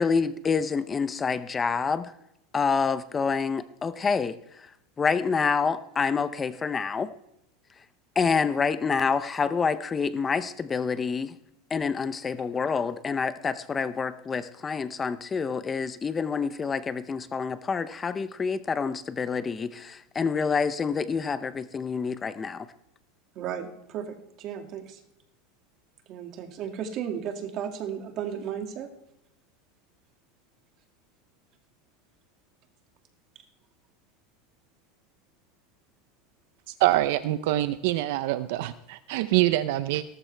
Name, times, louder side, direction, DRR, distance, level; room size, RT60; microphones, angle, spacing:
voice 1, 0.0-2.1 2.5-4.7 5.0-7.1 8.2-11.3 11.7-22.7, left 5 dB, 20° left, 13 dB, 0.6 m, -27 dB
voice 2, 23.3-25.0 26.1-28.9, right 8 dB, 40° right, 4 dB, 2.2 m, -34 dB
voice 3, 36.8-40.0, right 15 dB, 70° right, 12 dB, 0.6 m, -25 dB
18.0 x 13.5 x 3.4 m, 0.82 s
supercardioid pair, 145°, 0 cm